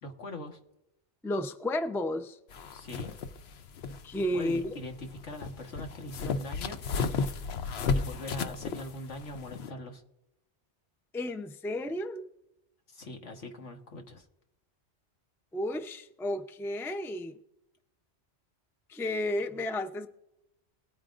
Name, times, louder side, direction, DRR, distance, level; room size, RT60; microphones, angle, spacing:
voice 1, 0.0-0.6 2.7-3.1 4.3-6.8 7.9-10.0 12.9-14.2, left 1 dB, 85° left, 3 dB, 1.7 m, -42 dB
voice 2, 1.2-2.4 4.0-4.8 11.1-12.3 15.5-17.4 18.9-20.1, left 1 dB, 5° left, 7 dB, 0.4 m, -32 dB
sound 1, 2.5-9.7, left 4 dB, 65° left, 0.9 m, -34 dB
20.0 x 9.0 x 2.5 m, 0.88 s
omnidirectional pair, 1.2 m